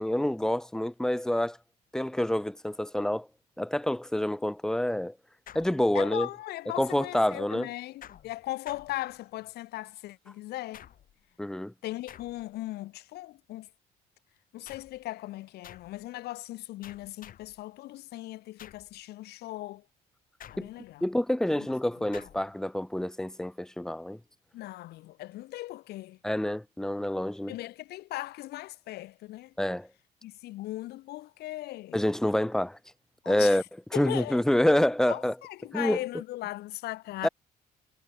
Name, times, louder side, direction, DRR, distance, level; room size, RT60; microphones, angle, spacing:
voice 1, 0.0-1.6 1.9-3.3 3.6-5.1 5.5-6.3 6.8-7.7 11.4-11.7 20.6-20.7 21.0-24.2 26.2-27.6 29.6-29.9 31.9-32.8 33.3-33.6 33.9-35.4 35.7-36.0 37.2-37.3, left 1 dB, 5° left, 0.6 m, -27 dB
sound 1, 5.5-6.3 8.0-9.5 10.7-11.3 12.1-12.7 14.6-15.1 15.6-16.0 16.8-17.6 18.6-19.0 20.4-21.0 22.1-22.6, left 10 dB, 55° left, 5.0 m, -51 dB
voice 2, 5.9-10.9 11.8-13.7 14.5-19.8 20.5-21.0 24.5-26.2 27.5-29.5 30.2-32.0 33.2-33.6 33.9-34.4 35.1-37.3, left 16 dB, 75° left, 0.8 m, -38 dB
cardioid pair, 110°, 17 cm